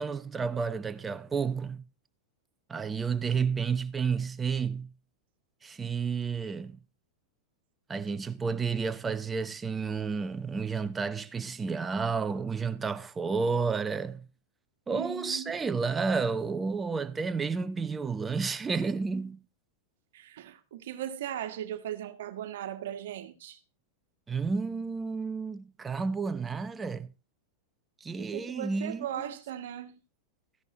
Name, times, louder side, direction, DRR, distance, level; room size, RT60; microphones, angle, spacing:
voice 1, 0.0-1.8 2.7-4.9 5.6-6.8 7.9-14.3 14.9-19.4 24.3-27.1 28.0-29.1, right 5 dB, 15° right, 0.9 m, -31 dB
voice 2, 14.9-15.5 20.1-23.6 28.2-30.0, right 10 dB, 70° right, 1.5 m, -38 dB
14.5 x 11.0 x 3.0 m
hypercardioid pair, 100°, 0 cm